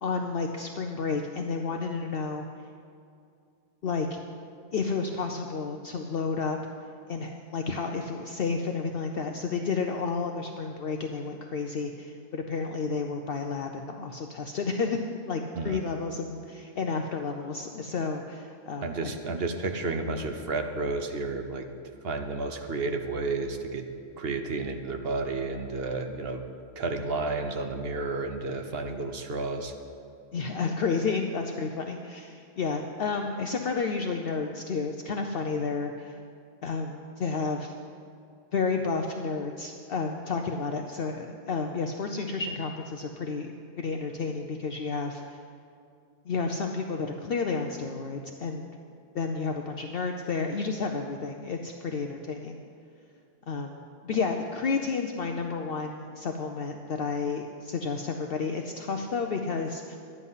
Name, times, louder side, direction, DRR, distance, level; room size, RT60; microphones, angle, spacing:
voice 1, 0.0-2.5 3.8-4.2 4.7-6.6 7.1-19.1 30.3-36.2 36.6-37.7 38.5-45.4 46.2-48.7 49.1-52.6 53.5-60.0, left 4 dB, 60° left, 4 dB, 0.8 m, -31 dB
voice 2, 18.8-21.7 22.0-23.8 24.2-26.4 26.8-29.7, right 3 dB, 60° right, 6 dB, 1.0 m, -31 dB
12.0 x 9.8 x 5.6 m, 2.5 s
omnidirectional pair, 1.2 m